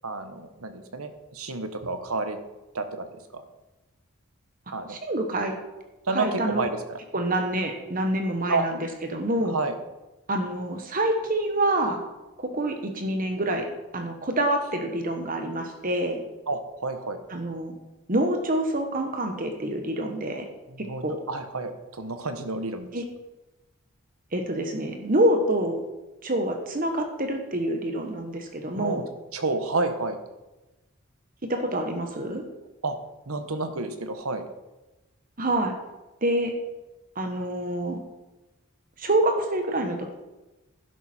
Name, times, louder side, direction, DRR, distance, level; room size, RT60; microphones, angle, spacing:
voice 1, 0.0-2.4 2.7-3.1 3.3-3.4 4.7-5.0 6.1-7.0 8.5-8.6 9.4-9.7 16.5-17.2 20.7-22.9 28.7-29.0 29.3-30.2 32.8-33.0 33.3-34.5, right 3 dB, 90° right, 8 dB, 1.3 m, -30 dB
voice 2, 4.9-5.6 6.1-6.6 7.1-8.8 9.1-9.6 10.3-12.0 12.4-16.2 17.3-17.8 18.1-20.5 20.8-21.2 22.9-23.0 24.3-25.8 26.2-29.1 31.4-32.4 35.4-35.7 36.2-36.5 37.1-38.0 39.0-40.1, right 1 dB, 40° right, 4 dB, 1.2 m, -26 dB
11.5 x 11.0 x 4.4 m, 1.1 s
head